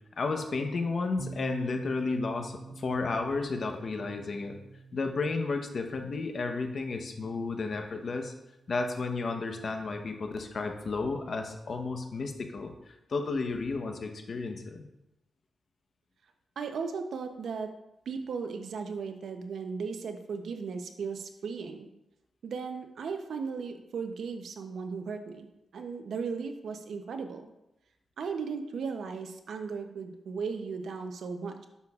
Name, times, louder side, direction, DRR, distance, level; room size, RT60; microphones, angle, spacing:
voice 1, 0.2-4.6 4.9-8.3 8.7-14.8, left 3 dB, 55° left, 5 dB, 0.9 m, -32 dB
sound 1, 1.2-8.9, right 3 dB, 10° left, 2.3 m, -47 dB
voice 2, 16.6-17.7 18.1-21.9 22.4-25.5 25.7-27.5 28.2-31.7, right 5 dB, 75° right, 6 dB, 0.7 m, -36 dB
9.6 x 6.2 x 2.4 m, 0.90 s
cardioid pair, 90°, 0 cm